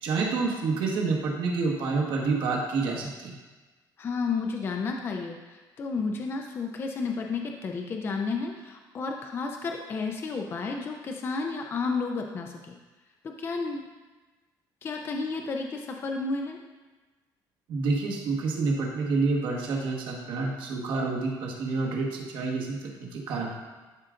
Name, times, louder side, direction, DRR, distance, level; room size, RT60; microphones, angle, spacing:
voice 1, 0.0-3.3 17.7-23.5, right 4 dB, 75° right, -1 dB, 1.4 m, -28 dB
voice 2, 4.0-12.8 13.2-13.8 14.8-16.6, left 4 dB, 30° left, 2 dB, 0.5 m, -32 dB
12.0 x 4.9 x 2.5 m, 1.3 s
cardioid pair, 160°, 8 cm